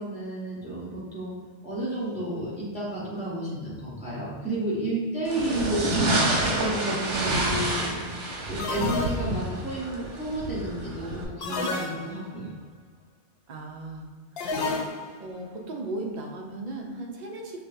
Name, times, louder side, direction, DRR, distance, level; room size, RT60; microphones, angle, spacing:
voice 1, 0.0-1.3 1.6-5.9 6.4-8.0 8.5-12.6, right 1 dB, 5° right, -8 dB, 0.9 m, -31 dB
sound 1, 5.2-11.2, right 2 dB, 85° right, 1.1 m, -28 dB
sound 2, 6.6-6.9 8.6-9.6 11.4-12.4 14.4-15.3, left 3 dB, 65° left, 0.8 m, -31 dB
voice 2, 13.5-14.6 15.2-17.6, right 2 dB, 55° right, 1 dB, 0.5 m, -37 dB
5.5 x 2.2 x 2.6 m, 1.4 s
omnidirectional pair, 1.2 m